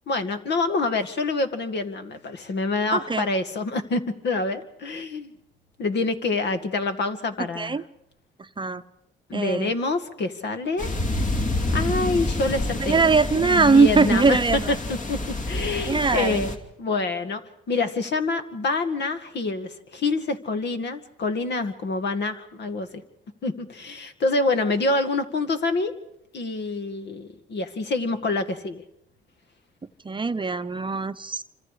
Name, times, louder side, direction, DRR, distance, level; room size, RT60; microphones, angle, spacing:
voice 1, 0.1-5.3 5.8-7.8 9.3-10.9 11.7-13.0 13.3-17.4 17.7-23.0 23.4-25.9 26.3-28.8, left 3 dB, 60° left, 9 dB, 2.1 m, -26 dB
voice 2, 2.9-3.2 7.4-7.8 8.4-8.8 9.3-9.7 12.8-14.7 15.8-16.5 30.0-31.4, right 4 dB, 25° right, 10 dB, 0.8 m, -21 dB
sound 1, 10.8-16.6, left 2 dB, 40° left, 2.8 m, -28 dB
27.0 x 26.0 x 5.0 m, 0.77 s
cardioid pair, 90°, 20 cm